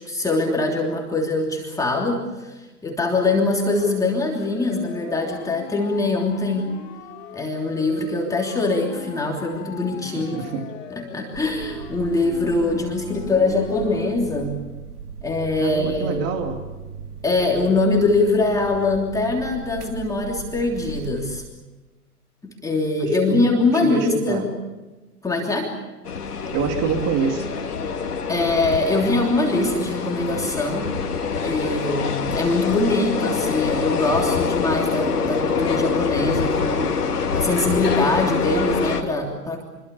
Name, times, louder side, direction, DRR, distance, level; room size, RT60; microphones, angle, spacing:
voice 1, 0.0-6.7 7.3-10.4 10.9-14.6 15.2-16.2 17.2-21.4 22.4-24.5 25.2-25.7 28.3-30.9 31.4-37.0 37.3-39.6, left 2 dB, 5° left, -1 dB, 3.1 m, -23 dB
Siren, 3.7-14.1, left 7 dB, 60° left, 3.7 m, -39 dB
voice 2, 10.1-10.7 15.6-16.6 23.0-24.5 26.5-27.5, right 6 dB, 35° right, 4 dB, 2.8 m, -26 dB
sound 1, 11.3-21.4, right 5 dB, 80° right, 3.2 m, -38 dB
sound 2, 26.0-39.0, left 5 dB, 85° left, 3.0 m, -25 dB
26.0 x 23.0 x 7.0 m, 1.2 s
hypercardioid pair, 120°, 45 cm